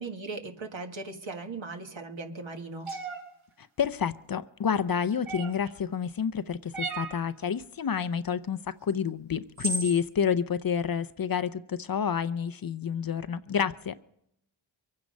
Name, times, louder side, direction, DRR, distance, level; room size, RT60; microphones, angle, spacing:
voice 1, 0.0-2.9, right 3 dB, 65° right, 1.8 m, -38 dB
sound 1, 2.9-3.2 5.3-5.7 6.7-7.2 8.9-9.0 9.6-10.0, right 3 dB, 80° right, 4.5 m, -33 dB
voice 2, 3.6-13.9, left 7 dB, 45° left, 0.6 m, -29 dB
23.5 x 9.6 x 5.3 m
cardioid pair, 50°, 50 cm